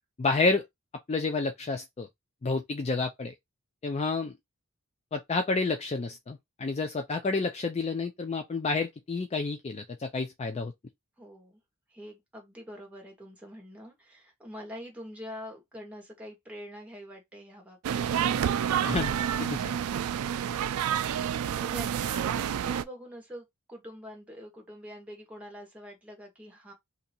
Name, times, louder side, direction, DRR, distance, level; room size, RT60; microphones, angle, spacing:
voice 1, 0.2-0.6 1.1-2.1 2.4-3.3 3.8-4.4 5.1-10.7 18.8-19.1 19.4-19.8, left 3 dB, 30° left, 0.4 m, -29 dB
voice 2, 11.2-11.6 11.9-18.7 19.3-19.4 21.5-26.7, equal, 5° right, 1.3 m, -45 dB
sound 1, 17.8-22.8, right 9 dB, 75° right, 0.3 m, -29 dB
2.8 x 2.6 x 4.3 m
head